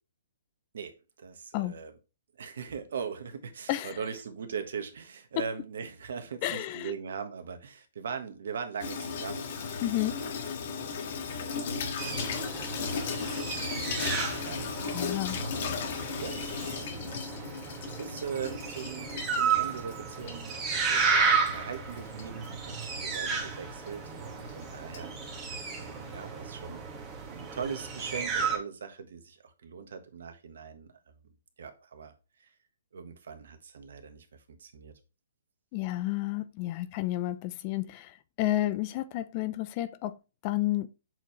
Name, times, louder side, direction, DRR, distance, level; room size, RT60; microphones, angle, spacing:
voice 1, 0.7-1.9 2.4-10.2 10.7-12.4 13.1-14.7 15.0-17.4 18.0-25.4 25.7-26.8 27.3-30.9 31.6-32.1 32.4-32.5 32.9-34.9, right 6 dB, 65° right, 1.3 m, -41 dB
voice 2, 6.4-6.9 9.8-10.2 14.9-15.4 35.7-40.9, left 15 dB, 35° left, 0.5 m, -31 dB
Water tap faucet / Sink (filling or washing), 8.8-26.3, left 5 dB, 55° left, 1.7 m, -37 dB
sound 1, 12.0-28.6, right 5 dB, 25° right, 1.9 m, -33 dB
7.7 x 4.4 x 3.1 m
hypercardioid pair, 135°, 0 cm